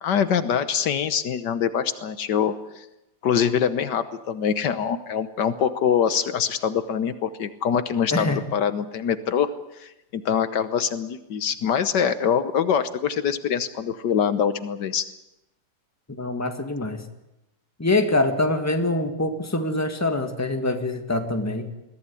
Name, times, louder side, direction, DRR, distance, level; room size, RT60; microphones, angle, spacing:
voice 1, 0.0-2.8 3.2-9.5 9.8-15.0, left 7 dB, 75° left, 12 dB, 1.6 m, -24 dB
voice 2, 8.1-8.4 16.2-17.1 17.8-21.7, left 2 dB, 10° left, 6 dB, 1.7 m, -24 dB
22.0 x 15.5 x 9.8 m, 0.91 s
omnidirectional pair, 1.9 m